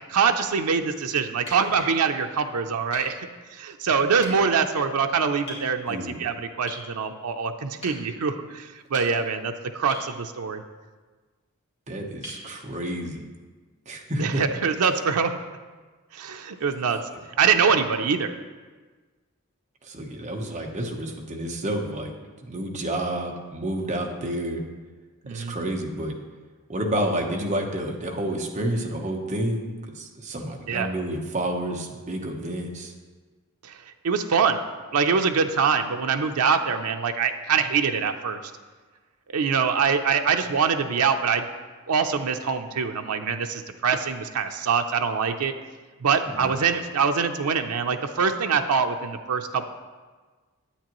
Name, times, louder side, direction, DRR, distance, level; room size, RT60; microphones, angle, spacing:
voice 1, 0.1-3.2 3.5-10.6 14.2-15.3 16.1-17.0 17.4-18.3 25.2-25.6 30.7-30.9 33.6-33.8 34.0-34.6 34.9-38.4 39.3-41.5 41.9-45.5 46.0-49.7, right 6 dB, 85° right, 6 dB, 0.5 m, -24 dB
sound 1, 1.3-2.0 2.9-3.1 4.2-4.3 5.5-5.7 6.7-6.9 7.8-8.0 8.7-9.4 9.9-10.1 12.2-12.5 14.3-14.4, left 1 dB, 25° left, 2.4 m, -39 dB
voice 2, 5.9-6.2 11.9-13.3 13.9-14.4 16.9-17.0 19.8-22.1 22.4-24.6 25.3-26.1 26.7-29.7 29.9-32.9 46.4-46.5, right 1 dB, 30° right, 0 dB, 0.9 m, -29 dB
10.0 x 8.6 x 3.0 m, 1.4 s
head